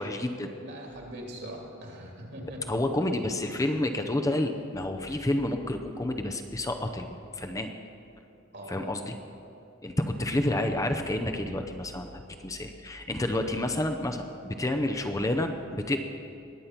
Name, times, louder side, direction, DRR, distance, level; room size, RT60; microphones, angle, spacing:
voice 1, 0.0-0.5 2.7-7.1 7.3-7.7 8.7-9.1 9.8-16.0, left 1 dB, 15° left, 5 dB, 0.6 m, -29 dB
voice 2, 0.6-2.6 8.5-9.0, right 1 dB, 60° right, 0 dB, 2.7 m, -41 dB
20.5 x 8.4 x 5.9 m, 2.8 s
head